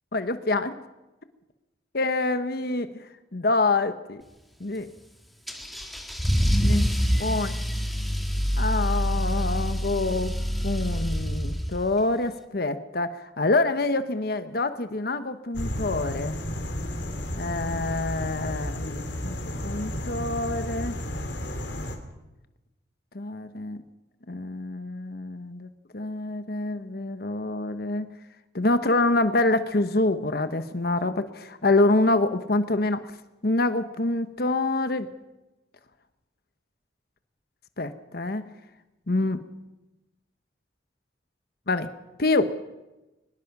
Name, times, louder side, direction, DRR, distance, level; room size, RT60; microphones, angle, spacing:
voice 1, 0.1-0.8 1.9-3.0 3.3-4.2 4.6-4.9 6.6-6.8 7.2-7.5 8.6-10.3 10.6-16.4 17.4-21.0 23.1-23.8 24.3-25.7 25.9-28.1 28.5-33.0 33.4-35.1 37.8-38.4 39.1-39.4 41.7-41.9 42.2-42.6, left 2 dB, 55° left, 10 dB, 1.1 m, -26 dB
Car / Engine starting / Accelerating revving vroom, 5.5-12.0, equal, ahead, 1.9 m, -26 dB
sound 1, 15.5-22.0, left 1 dB, 80° left, 3.3 m, -32 dB
23.0 x 20.5 x 6.1 m, 1.0 s
head